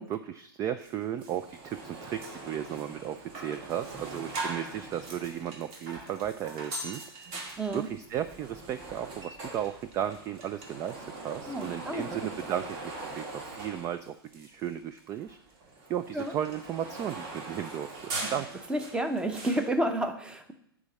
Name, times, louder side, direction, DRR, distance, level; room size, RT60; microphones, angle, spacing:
voice 1, 0.0-7.5 7.7-15.4 15.9-18.5, right 10 dB, 25° right, 12 dB, 0.4 m, -35 dB
sound 1, 0.8-0.9 1.2-14.7 15.0-19.7, right 2 dB, 40° right, 1.9 m, -41 dB
voice 2, 7.6-7.9 11.5-12.3 16.1-16.3 18.2-18.3 18.7-20.5, right 1 dB, 5° right, 8 dB, 0.8 m, -31 dB
9.6 x 3.7 x 7.0 m, 0.72 s
hypercardioid pair, 110°, 13 cm